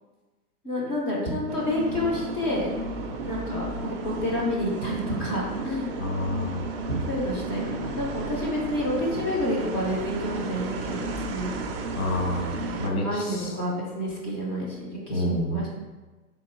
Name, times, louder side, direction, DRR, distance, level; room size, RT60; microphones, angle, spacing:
voice 1, 0.6-2.7 3.2-5.9 6.9-11.6 12.9-15.7, left 1 dB, 15° left, -3 dB, 0.5 m, -29 dB
sound 1, 1.5-12.9, right 2 dB, 40° right, 0.5 m, -33 dB
voice 2, 6.0-6.7 12.0-12.5 12.8-13.5 15.1-15.6, left 1 dB, 65° left, -1 dB, 1.4 m, -28 dB
3.7 x 2.7 x 4.3 m, 1.2 s
hypercardioid pair, 135°, 46 cm